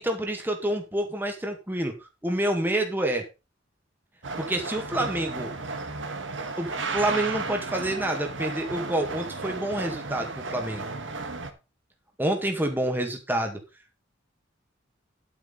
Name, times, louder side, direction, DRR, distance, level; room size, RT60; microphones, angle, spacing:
voice 1, 0.0-1.9 2.2-3.2 4.4-5.5 6.6-10.9 12.2-13.6, right 1 dB, 10° right, 3 dB, 2.0 m, -28 dB
sound 1, 4.2-11.5, right 3 dB, 70° right, 1.7 m, -34 dB
11.0 x 9.1 x 4.1 m, 0.28 s
head